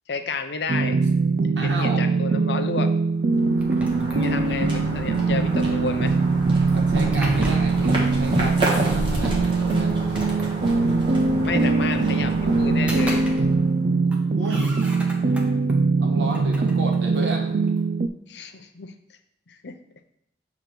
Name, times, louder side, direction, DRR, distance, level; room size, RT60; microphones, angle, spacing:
voice 1, 0.1-1.0 1.6-2.9 4.1-6.1 11.4-13.2 18.3-18.9 19.5-19.8, left 4 dB, 75° left, 8 dB, 0.6 m, -31 dB
sound 1, 0.7-18.1, right 4 dB, 50° right, 0.3 m, -22 dB
voice 2, 1.6-2.0 6.7-10.0 14.4-14.9 16.0-17.6, right 1 dB, 85° right, 0 dB, 1.3 m, -33 dB
sound 2, 3.2-14.0, right 1 dB, 30° right, 1.5 m, -30 dB
sound 3, 3.6-4.7 6.7-8.0 9.2-9.3 9.9-11.0 12.6-13.8 14.1-15.7 16.2-17.9, equal, 5° right, 0.7 m, -37 dB
6.8 x 3.0 x 5.8 m, 0.76 s
head